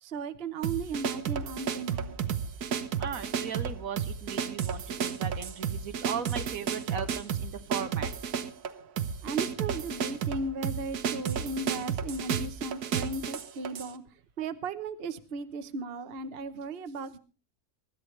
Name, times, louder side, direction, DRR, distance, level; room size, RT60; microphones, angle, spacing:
voice 1, 0.0-2.2 9.2-17.2, right 3 dB, 45° right, 10 dB, 1.1 m, -36 dB
sound 1, 0.6-13.9, right 7 dB, 85° right, 1.6 m, -32 dB
voice 2, 3.0-8.1, right 7 dB, 65° right, 10 dB, 1.4 m, -37 dB
24.0 x 13.0 x 3.2 m, 0.35 s
omnidirectional pair, 1.6 m